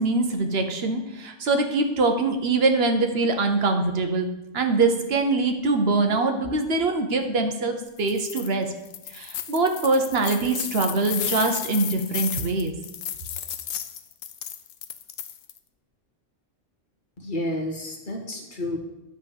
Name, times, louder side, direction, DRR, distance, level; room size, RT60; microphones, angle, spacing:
voice 1, 0.0-4.3 4.5-8.7 9.1-12.7, right 3 dB, 55° right, 5 dB, 1.1 m, -23 dB
sound 1, 8.0-8.5 8.9-15.6, left 10 dB, 70° left, 0.9 m, -33 dB
voice 2, 17.2-18.8, left 1 dB, 40° left, 1 dB, 1.5 m, -30 dB
10.5 x 3.5 x 7.1 m, 0.97 s
omnidirectional pair, 1.3 m